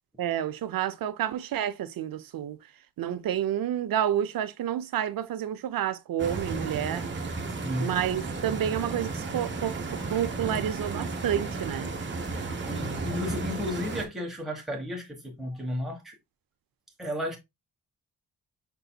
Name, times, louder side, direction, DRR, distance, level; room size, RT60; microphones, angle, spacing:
voice 1, 0.2-2.6 3.0-7.1 7.8-9.8 10.1-11.9, right 10 dB, 65° right, 0.7 m, -29 dB
Stream, 6.2-14.0, right 3 dB, 30° right, 1.1 m, -33 dB
voice 2, 12.7-16.2 17.0-17.4, left 1 dB, ahead, 1.4 m, -33 dB
5.5 x 3.9 x 2.3 m
wide cardioid pair, 155°, 37 cm